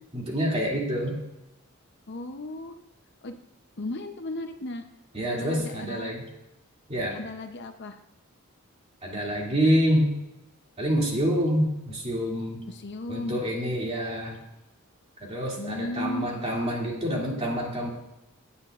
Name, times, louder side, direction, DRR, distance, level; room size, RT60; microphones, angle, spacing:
voice 1, 0.1-1.2 5.1-6.2 6.9-7.2 9.0-10.1 10.8-12.6 13.1-14.4 15.2-17.9, equal, 30° right, -2 dB, 2.6 m, -27 dB
voice 2, 2.1-2.7 3.2-3.4 3.8-4.8 5.3-6.2 7.1-8.0 12.7-13.4 15.6-16.3, left 2 dB, 50° left, 7 dB, 0.8 m, -35 dB
16.5 x 9.9 x 2.5 m, 0.93 s
head